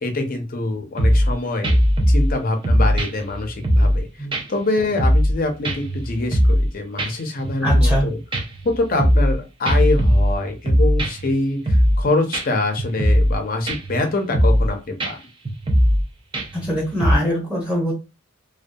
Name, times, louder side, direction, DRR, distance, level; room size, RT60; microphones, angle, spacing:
voice 1, 0.0-1.8 2.1-8.2 8.6-15.2, left 2 dB, 45° left, 5 dB, 0.6 m, -25 dB
sound 1, 1.0-1.3 1.6-2.3 2.6-4.0 4.3-4.4 4.8-5.4 5.6-6.7 7.0-7.1 7.4-8.0 8.3-9.4 9.7-11.3 11.7-12.0 12.3-12.4 12.8-13.4 13.7-14.0 14.3-14.7 15.0-15.1 15.5-16.0 16.3-16.7 17.0-17.2, equal, 25° right, 0.4 m, -18 dB
voice 2, 7.6-8.1 16.5-17.9, equal, 5° right, -4 dB, 0.8 m, -23 dB
2.6 x 2.2 x 2.3 m, 0.28 s
head